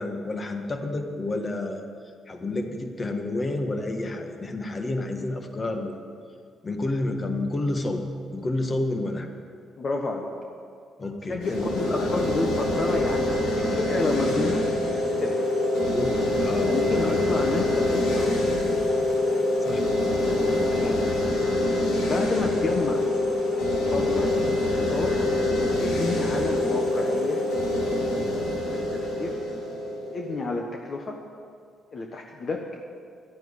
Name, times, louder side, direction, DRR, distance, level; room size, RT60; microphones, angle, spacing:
voice 1, 0.0-1.8 2.3-5.9 6.6-8.0 8.3-9.3 11.0-11.7 11.9-12.2 15.8-17.4 19.6-19.9, left 2 dB, 30° left, 5 dB, 1.6 m, -30 dB
voice 2, 9.8-10.3 11.3-14.6 15.2-15.4 16.6-18.6 20.7-21.0 22.0-23.1 23.7-24.3 24.7-25.2 25.8-27.4 28.7-29.4 30.1-31.2 31.9-32.7, left 3 dB, 45° left, 2 dB, 1.3 m, -30 dB
sound 1, 11.4-30.5, left 1 dB, 90° left, 3.4 m, -25 dB
12.0 x 9.0 x 9.9 m, 2.3 s
cardioid pair, 90°, 0 cm